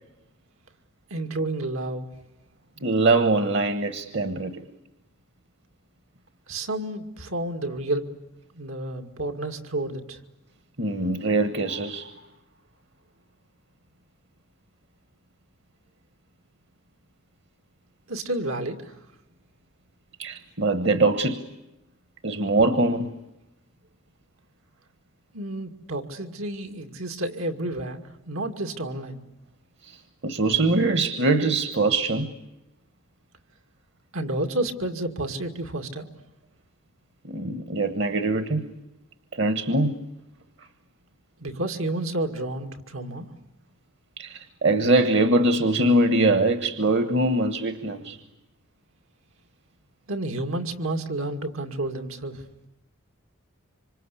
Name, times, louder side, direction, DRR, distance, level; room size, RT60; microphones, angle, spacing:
voice 1, 1.1-2.1 6.5-8.0 8.5-10.2 18.1-18.9 25.3-29.2 34.1-36.1 41.4-43.3 50.1-52.4, right 1 dB, 85° right, 6 dB, 2.4 m, -30 dB
voice 2, 2.8-4.6 10.8-12.1 20.2-21.4 22.2-23.1 29.8-30.0 30.2-32.3 37.2-38.6 39.3-39.9 44.2-48.2, right 2 dB, 55° right, 10 dB, 1.3 m, -22 dB
26.5 x 26.0 x 8.5 m, 0.96 s
head